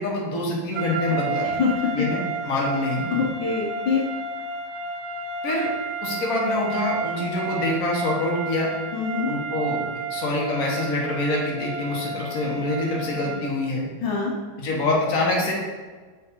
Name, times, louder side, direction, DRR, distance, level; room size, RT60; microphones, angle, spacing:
voice 1, 0.0-1.5 1.9-2.2 2.4-3.2 5.4-5.7 6.0-8.7 9.3-9.8 10.1-13.8 14.6-15.5, left 2 dB, 50° left, -3 dB, 1.5 m, -25 dB
sound 1, 0.7-13.6, right 4 dB, 90° right, 1.4 m, -31 dB
voice 2, 1.6-2.1 3.1-4.0 8.9-9.3 14.0-14.3, left 5 dB, 75° left, -1 dB, 1.5 m, -24 dB
7.5 x 3.6 x 3.6 m, 1.4 s
omnidirectional pair, 2.2 m